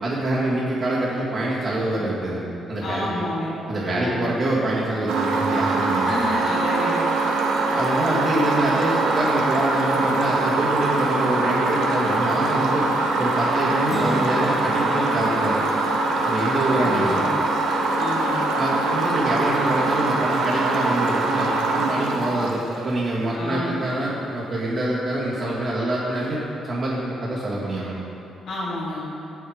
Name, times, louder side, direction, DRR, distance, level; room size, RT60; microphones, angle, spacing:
voice 1, 0.0-2.4 2.7-3.2 3.7-6.2 7.7-12.9 13.2-15.7 16.2-17.3 18.6-26.4 26.6-28.0, right 1 dB, 50° right, -9 dB, 2.0 m, -25 dB
voice 2, 2.8-3.6 3.8-4.2 6.0-7.1 16.8-17.4 18.0-18.5 23.3-23.8 28.5-29.1, left 1 dB, 70° left, -9 dB, 2.2 m, -29 dB
sound 1, 5.1-23.0, right 2 dB, 90° right, 1.0 m, -23 dB
Acoustic guitar, 13.9-17.5, equal, 15° right, 1.4 m, -34 dB
8.4 x 7.9 x 5.0 m, 2.8 s
cardioid pair, 90°, 0 cm